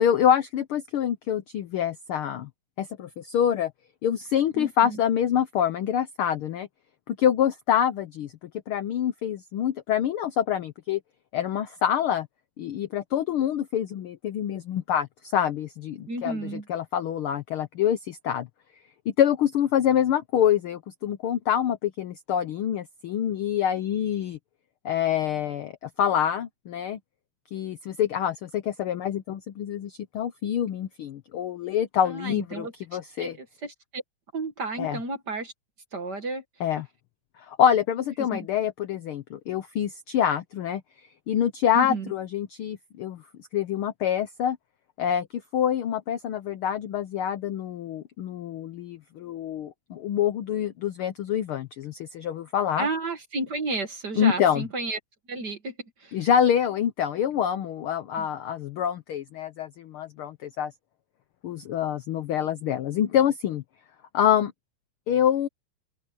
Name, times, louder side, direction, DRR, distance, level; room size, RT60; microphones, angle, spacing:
voice 1, 0.0-2.5 2.8-3.7 4.0-6.7 7.1-8.3 8.7-11.0 11.3-12.3 12.6-18.5 19.2-24.4 24.8-27.0 27.5-33.4 34.8-35.0 36.6-36.9 37.5-40.8 41.3-43.2 43.5-44.6 45.0-52.9 54.1-54.6 56.1-60.7 61.4-63.6 64.1-64.5 65.1-65.5, left 9 dB, 80° left, 1.2 m, -26 dB
voice 2, 4.6-5.0 16.1-16.6 32.1-32.7 33.2-34.0 34.3-35.5 35.9-36.4 38.2-38.5 41.7-42.1 52.8-55.0 55.3-55.7 56.0-56.2 58.2-58.3, right 2 dB, 40° right, 1.8 m, -32 dB
open air
omnidirectional pair, 3.4 m